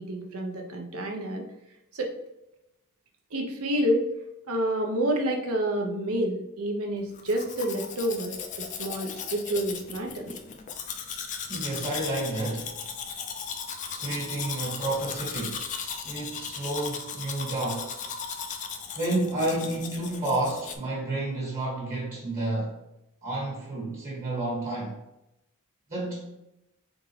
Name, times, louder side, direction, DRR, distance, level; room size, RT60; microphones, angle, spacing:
voice 1, 0.0-1.5 1.9-2.1 3.3-4.1 4.4-10.4, right 1 dB, 70° right, 2 dB, 0.9 m, -29 dB
Domestic sounds home sounds, 7.1-20.8, left 6 dB, 35° left, 0.4 m, -37 dB
voice 2, 11.5-12.7 14.0-15.6 16.0-18.0 18.9-22.8 23.2-25.0 25.9-26.3, right 2 dB, 40° right, -5 dB, 1.4 m, -30 dB
3.7 x 3.7 x 3.2 m, 0.89 s
head